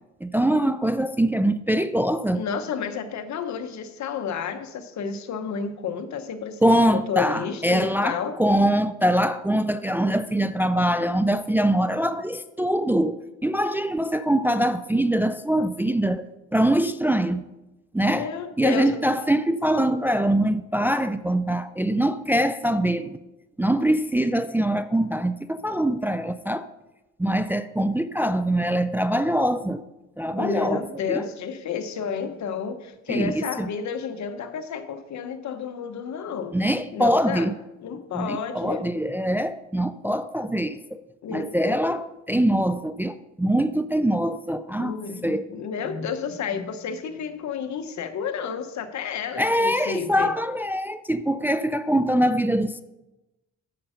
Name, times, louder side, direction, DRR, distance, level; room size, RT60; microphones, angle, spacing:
voice 1, 0.2-2.4 6.6-16.3 16.5-17.4 17.9-18.3 18.6-23.2 23.6-26.6 27.2-29.8 30.2-30.8 31.1-31.2 33.1-33.7 36.5-37.5 38.1-41.0 41.3-45.0 45.2-45.5 49.4-52.8, right 1 dB, 5° right, 0.4 m, -23 dB
voice 2, 2.3-8.4 18.1-19.0 30.4-36.6 36.9-37.5 37.8-38.8 41.2-41.8 44.8-50.3, left 6 dB, 65° left, 1.1 m, -31 dB
8.8 x 6.7 x 5.8 m
cardioid pair, 90°, 30 cm